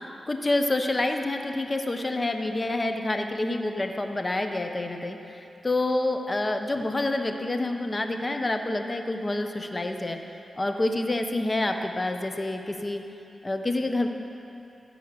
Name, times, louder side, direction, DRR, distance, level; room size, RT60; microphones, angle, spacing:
voice 1, 0.3-10.2 10.6-13.0 13.4-14.1, left 2 dB, 35° left, 5 dB, 1.2 m, -28 dB
15.5 x 5.6 x 8.9 m, 2.8 s
cardioid pair, 45°, 0 cm